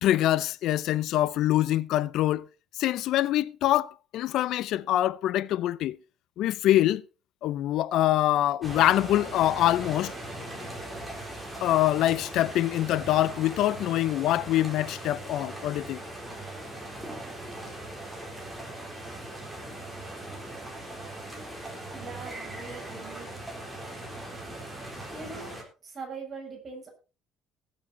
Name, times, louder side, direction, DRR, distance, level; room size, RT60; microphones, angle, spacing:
voice 1, 0.0-2.5 2.8-6.0 6.4-7.0 7.4-10.1 11.6-16.0, left 13 dB, 65° left, 0.5 m, -24 dB
sound 1, 8.6-25.6, right 1 dB, 5° right, 3.8 m, -40 dB
voice 2, 21.9-23.3 25.1-25.6 25.8-26.9, right 4 dB, 30° right, 6.6 m, -41 dB
19.0 x 7.5 x 4.2 m
cardioid pair, 155°, 0 cm